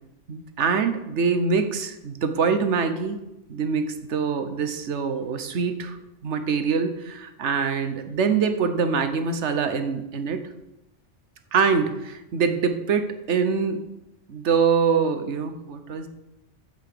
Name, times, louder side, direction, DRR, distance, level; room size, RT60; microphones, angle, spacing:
voice 1, 0.3-3.2 3.5-6.0 6.2-10.4 11.5-13.8 14.3-16.1, right 5 dB, 70° right, 8 dB, 1.3 m, -24 dB
12.0 x 8.0 x 5.0 m, 0.90 s
omnidirectional pair, 1.2 m